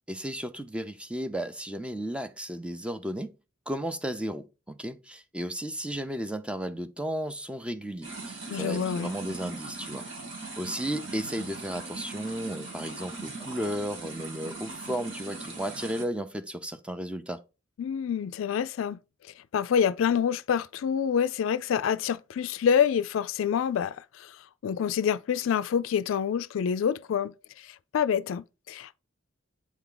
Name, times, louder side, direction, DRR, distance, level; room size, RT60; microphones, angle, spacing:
voice 1, 0.0-3.3 3.7-10.0 10.6-17.4, equal, 5° right, 0.5 m, -34 dB
sound 1, 8.0-16.0, right 3 dB, 80° right, 2.4 m, -40 dB
voice 2, 8.5-9.1 17.8-19.0 19.5-24.3 24.6-27.3 27.9-29.0, left 7 dB, 75° left, 0.3 m, -27 dB
sound 2, 10.8-12.1 12.6-13.3 15.2-15.3, right 3 dB, 60° right, 1.1 m, -53 dB
8.3 x 3.5 x 3.8 m
head